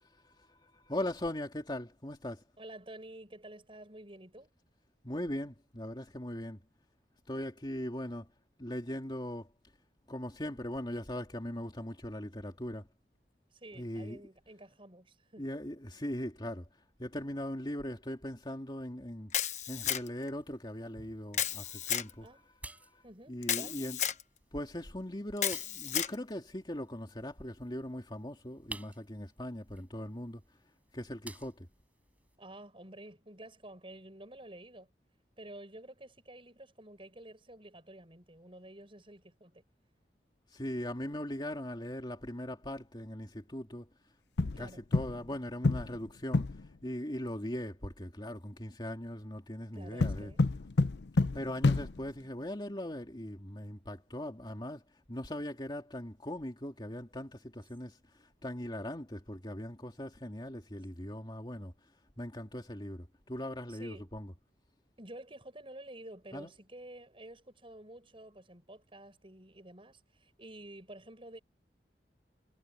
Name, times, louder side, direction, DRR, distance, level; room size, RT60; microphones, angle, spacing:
voice 1, 0.0-2.4 5.0-6.6 7.3-8.3 8.6-9.5 10.1-12.9 13.7-14.2 15.4-19.4 19.7-22.5 22.8-24.0 24.5-30.4 30.9-31.7 40.5-43.9 44.4-50.3 51.3-61.9 62.2-64.3 66.3-66.5, left 1 dB, 25° left, 2.5 m, -40 dB
voice 2, 2.6-4.5 13.5-15.4 22.2-22.4 23.0-23.8 32.4-34.9 35.4-39.6 44.5-44.8 49.7-50.4 63.7-64.1 65.0-71.4, right 1 dB, 30° right, 7.4 m, -50 dB
Camera, 19.3-20.3 21.3-22.1 23.4-24.2 25.4-26.1, left 10 dB, 45° left, 1.1 m, -33 dB
sound 1, 20.4-32.4, right 2 dB, 10° right, 5.2 m, -54 dB
sound 2, 44.4-45.3 45.6-46.7 50.0-52.2, left 3 dB, 75° left, 0.6 m, -29 dB
head